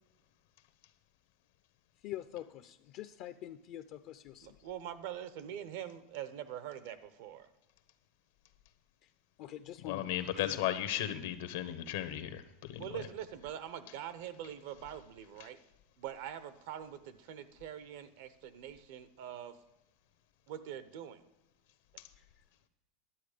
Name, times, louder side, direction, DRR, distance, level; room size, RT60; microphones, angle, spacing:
voice 1, 2.0-4.6 9.0-9.1 9.4-10.6 22.2-22.7, left 12 dB, 55° left, 9 dB, 0.5 m, -46 dB
voice 2, 4.4-7.5 12.8-15.6 16.0-19.6 20.5-21.2, right 10 dB, 70° right, 12 dB, 0.8 m, -44 dB
voice 3, 9.8-13.0 22.0-22.1, left 12 dB, 80° left, 10 dB, 1.0 m, -36 dB
11.5 x 8.0 x 5.1 m, 0.98 s
supercardioid pair, 140°, 0 cm